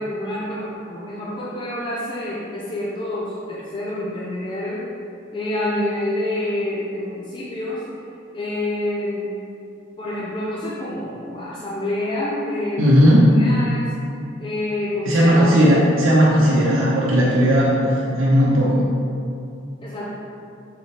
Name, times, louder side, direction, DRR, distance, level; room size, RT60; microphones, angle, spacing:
voice 1, 0.0-4.9 5.3-7.9 8.3-9.4 10.0-13.9 14.4-15.7 18.5-18.9 19.8-20.2, left 1 dB, 25° left, -6 dB, 0.4 m, -27 dB
voice 2, 12.8-13.2 15.1-18.8, equal, 85° right, -7 dB, 0.7 m, -16 dB
3.8 x 3.1 x 4.3 m, 2.5 s
head